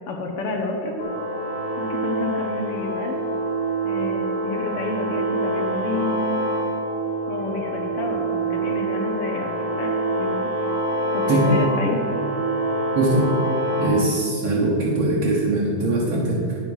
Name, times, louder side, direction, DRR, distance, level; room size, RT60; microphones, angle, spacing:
voice 1, 0.1-1.0 1.8-3.2 3.8-6.4 7.3-10.5 11.1-12.0, left 2 dB, 70° left, 2 dB, 1.3 m, -30 dB
sound 1, 1.0-13.9, right 1 dB, 55° left, 2.0 m, -26 dB
voice 2, 12.9-13.3 13.8-16.6, right 2 dB, 60° right, -5 dB, 1.7 m, -21 dB
9.7 x 8.0 x 5.4 m, 2.6 s
omnidirectional pair, 3.6 m